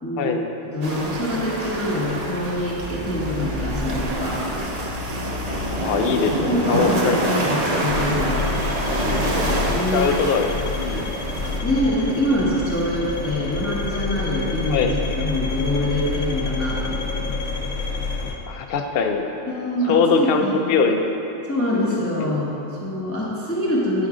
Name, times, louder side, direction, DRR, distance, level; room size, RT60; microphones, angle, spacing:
voice 1, 0.0-0.4 0.7-4.4 6.4-8.5 9.2-10.2 11.6-17.4 19.5-20.5 21.5-24.1, left 1 dB, 15° left, -6 dB, 0.7 m, -25 dB
sound 1, 0.8-11.6, right 1 dB, 40° right, 0.7 m, -26 dB
voice 2, 5.8-7.2 8.9-9.2 9.9-10.5 10.8-11.0 14.7-14.9 18.5-19.2 19.9-21.1 21.7-22.2, left 5 dB, 60° left, 4 dB, 0.7 m, -22 dB
sound 2, 7.9-18.4, left 4 dB, 85° left, 1.0 m, -28 dB
8.6 x 3.8 x 4.8 m, 2.9 s
omnidirectional pair, 1.2 m